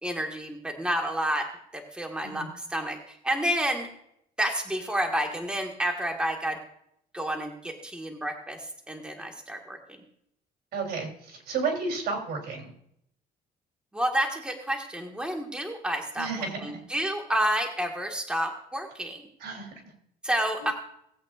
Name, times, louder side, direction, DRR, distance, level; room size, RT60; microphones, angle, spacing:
voice 1, 0.0-3.9 4.4-6.6 7.1-10.0 13.9-16.3 16.6-19.2 20.2-20.7, right 1 dB, 5° right, 2 dB, 1.7 m, -30 dB
voice 2, 10.7-12.7 16.2-16.7 19.4-19.7 20.6-20.7, right 4 dB, 70° right, 2 dB, 3.4 m, -32 dB
19.0 x 8.4 x 2.5 m, 0.72 s
cardioid pair, 110°, 17 cm